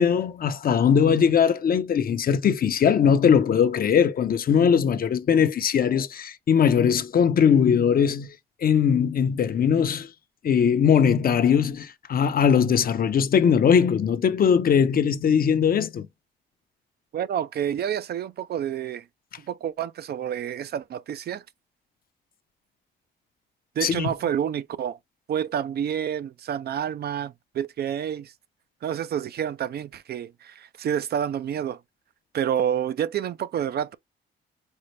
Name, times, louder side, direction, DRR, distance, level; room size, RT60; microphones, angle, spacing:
voice 1, 0.0-8.3 8.6-10.1 10.4-16.1 23.8-24.1, left 7 dB, 45° left, 0.6 m, -20 dB
voice 2, 17.1-19.1 19.5-21.4 23.8-25.0 25.3-28.3 28.8-31.8 32.3-34.0, right 9 dB, 55° right, 0.4 m, -28 dB
5.3 x 2.1 x 3.1 m
cardioid pair, 90°, 20 cm